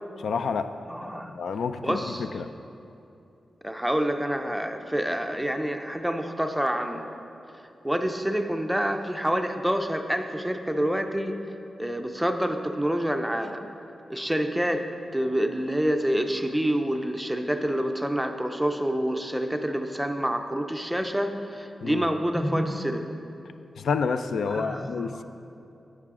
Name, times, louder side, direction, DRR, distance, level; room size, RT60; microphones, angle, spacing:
voice 1, 0.2-0.7 1.4-2.0 2.3-2.5 21.8-22.0 23.8-25.2, left 5 dB, 85° left, 10 dB, 0.3 m, -28 dB
voice 2, 0.9-1.3 1.8-2.5 3.6-7.1 7.8-11.4 11.8-13.6 14.1-14.9 15.1-23.2 24.5-25.2, equal, ahead, 6 dB, 0.4 m, -27 dB
10.5 x 8.2 x 3.6 m, 2.7 s
wide cardioid pair, 165°, 0 cm